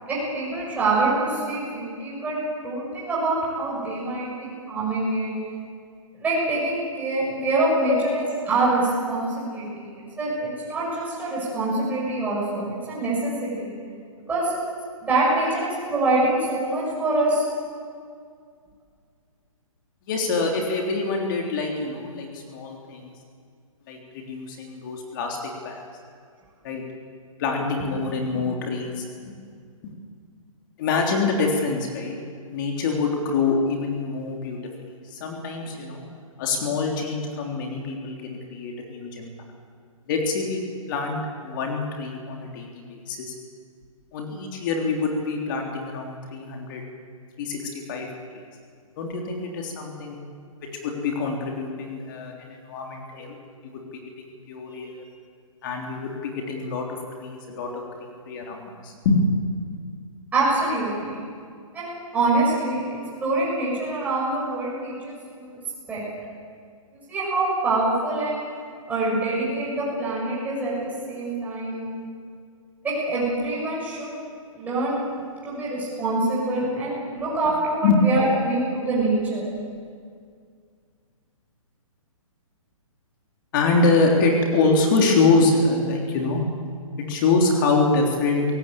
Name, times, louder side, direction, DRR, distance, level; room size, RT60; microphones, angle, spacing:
voice 1, 0.1-2.4 2.6-5.3 6.1-9.9 10.2-13.7 14.3-14.6 15.0-17.4 60.3-61.2 61.7-62.8 63.2-65.6 65.9-66.0 67.1-68.4 68.9-71.9 72.8-74.1 74.6-79.5, right 2 dB, 10° right, -7 dB, 6.4 m, -25 dB
voice 2, 20.1-23.1 23.9-25.4 25.6-25.8 26.6-26.8 27.4-29.3 30.8-32.1 32.5-34.6 35.1-36.0 36.4-39.3 40.1-40.6 40.9-43.3 44.1-46.8 47.4-48.1 49.0-50.2 50.8-53.3 54.5-55.0 55.6-56.8 57.2-59.2 77.8-78.0 83.5-86.4 87.0-88.5, left 3 dB, 35° left, 1 dB, 3.4 m, -25 dB
22.0 x 17.5 x 8.9 m, 2.1 s
hypercardioid pair, 155°, 18 cm